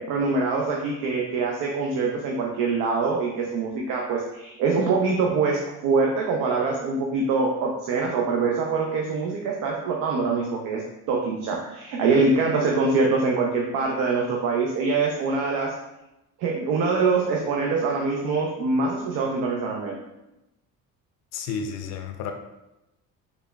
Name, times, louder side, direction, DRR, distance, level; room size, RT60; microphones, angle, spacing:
voice 1, 0.0-15.7 16.4-20.0, right 4 dB, 85° right, 0 dB, 0.6 m, -24 dB
voice 2, 21.3-22.3, left 6 dB, 60° left, 5 dB, 0.4 m, -31 dB
4.0 x 3.2 x 2.2 m, 0.94 s
cardioid pair, 125°, 31 cm